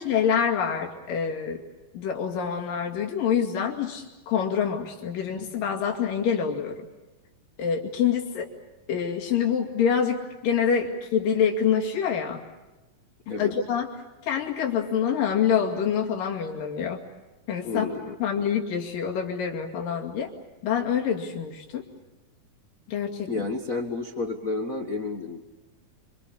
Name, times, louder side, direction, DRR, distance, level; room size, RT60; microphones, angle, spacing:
voice 1, 0.0-1.6 1.9-6.8 7.6-8.5 8.9-12.4 13.4-13.9 14.2-17.0 17.5-17.9 18.2-20.3 20.6-21.8 22.9-23.5, left 7 dB, 85° left, 1 dB, 4.2 m, -26 dB
voice 2, 17.6-18.5 23.3-25.4, left 3 dB, 45° left, 3 dB, 1.1 m, -31 dB
27.0 x 26.0 x 7.1 m, 1.1 s
omnidirectional pair, 3.8 m